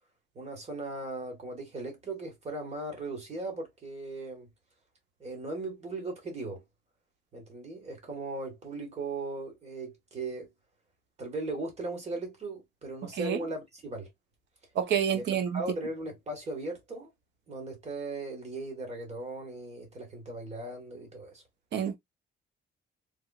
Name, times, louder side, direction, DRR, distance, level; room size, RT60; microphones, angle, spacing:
voice 1, 0.3-4.5 5.2-6.6 7.3-10.5 11.2-14.1 15.1-17.1 17.5-21.4, right 2 dB, 35° right, 1.4 m, -38 dB
voice 2, 14.8-15.6 21.7-21.9, right 8 dB, 60° right, 0.9 m, -28 dB
3.4 x 3.1 x 2.4 m
cardioid pair, 175°, 20 cm